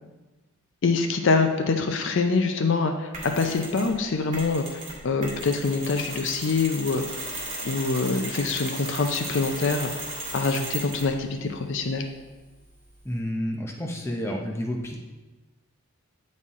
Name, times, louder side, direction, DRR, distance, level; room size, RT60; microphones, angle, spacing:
voice 1, 0.8-7.2 7.6-9.9 10.3-12.0, left 4 dB, 55° left, 5 dB, 0.5 m, -25 dB
Mechanisms, 3.1-4.0 4.3-11.2, right 2 dB, 35° right, 1.6 m, -36 dB
voice 2, 13.0-15.0, equal, 10° left, 0 dB, 0.6 m, -30 dB
8.6 x 4.2 x 3.6 m, 1.2 s
head